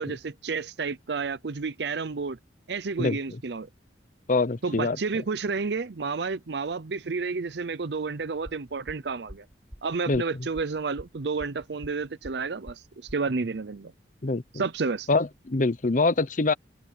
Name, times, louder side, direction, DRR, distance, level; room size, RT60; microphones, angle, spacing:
voice 1, 0.0-2.4 2.7-3.7 4.6-9.5 9.8-13.9 14.5-15.1, right 4 dB, 65° right, 0.7 m, -31 dB
voice 2, 3.0-3.4 4.3-5.0 10.1-10.5 14.2-14.4 15.1-16.5, left 3 dB, 45° left, 0.8 m, -25 dB
sound 1, 8.4-13.3, equal, 15° right, 6.2 m, -46 dB
open air
head